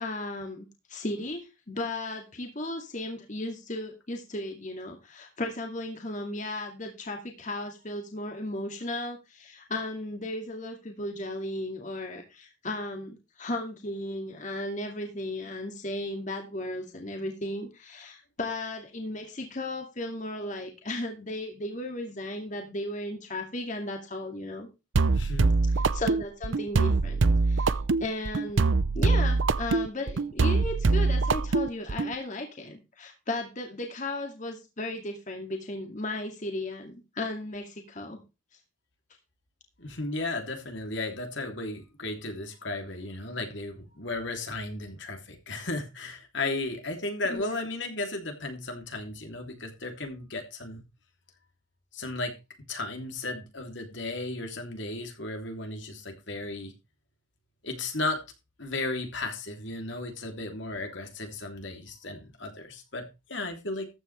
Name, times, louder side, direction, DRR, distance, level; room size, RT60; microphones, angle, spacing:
voice 1, 0.0-24.7 25.7-28.7 28.9-38.2 47.3-47.5, left 2 dB, 40° left, 2.4 m, -35 dB
sound 1, 24.9-32.1, right 3 dB, 75° right, 0.6 m, -24 dB
voice 2, 25.1-25.6 39.8-50.8 51.9-52.3 52.7-56.7 57.6-58.2 58.6-63.9, left 2 dB, 65° left, 3.1 m, -35 dB
14.0 x 9.7 x 3.3 m
head